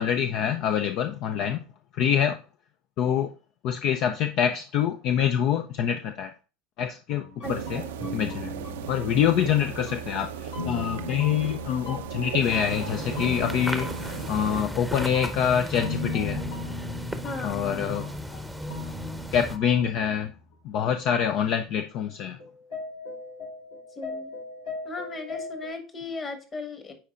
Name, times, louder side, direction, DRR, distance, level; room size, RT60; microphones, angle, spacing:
voice 1, 0.0-1.6 2.0-2.4 3.0-3.3 3.6-6.3 6.8-7.8 8.1-8.5 8.9-16.4 17.4-18.1 19.3-20.3 20.7-22.4, left 9 dB, 55° left, 7 dB, 0.5 m, -25 dB
sound 1, 7.1-20.2 20.5-20.6 22.1-22.2 22.4-25.7, left 2 dB, 80° left, 3.8 m, -38 dB
voice 2, 7.4-7.9 17.2-17.9 24.0-24.3 24.8-26.9, left 3 dB, 30° left, 6 dB, 1.4 m, -37 dB
sound 2, 7.4-14.6, right 8 dB, 75° right, 0.5 m, -37 dB
sound 3, 12.4-19.6, equal, ahead, 0.8 m, -35 dB
9.1 x 4.4 x 2.5 m, 0.34 s
hypercardioid pair, 80°, 0 cm